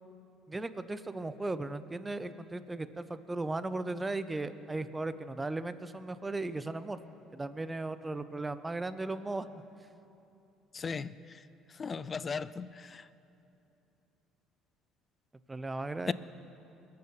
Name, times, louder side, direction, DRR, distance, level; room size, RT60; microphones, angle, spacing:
voice 1, 0.5-7.0 7.3-9.5 15.5-16.1, right 2 dB, 20° right, 13 dB, 0.7 m, -36 dB
voice 2, 10.7-11.1 11.8-13.0 16.1-16.2, left 5 dB, 35° left, 17 dB, 0.4 m, -36 dB
22.0 x 7.7 x 5.8 m, 2.8 s
supercardioid pair, 70°, 0 cm